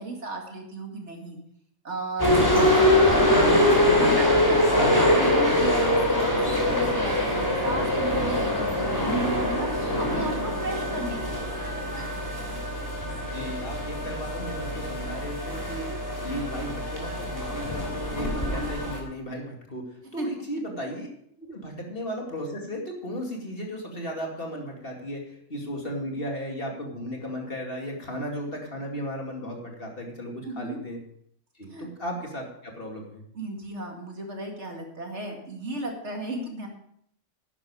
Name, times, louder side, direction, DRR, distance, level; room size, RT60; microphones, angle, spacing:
voice 1, 0.0-1.4 1.8-11.5 12.0-12.2 20.2-20.3 30.4-30.8 31.7-31.9 33.3-36.7, right 2 dB, 60° right, 1 dB, 2.5 m, -34 dB
sound 1, 2.2-19.0, left 1 dB, 15° left, 2.9 m, -24 dB
voice 2, 13.2-15.9 16.2-19.8 20.1-21.1 21.4-31.0 31.6-33.2, equal, 45° left, 0 dB, 2.5 m, -35 dB
11.0 x 10.0 x 4.9 m, 0.69 s
omnidirectional pair, 1.3 m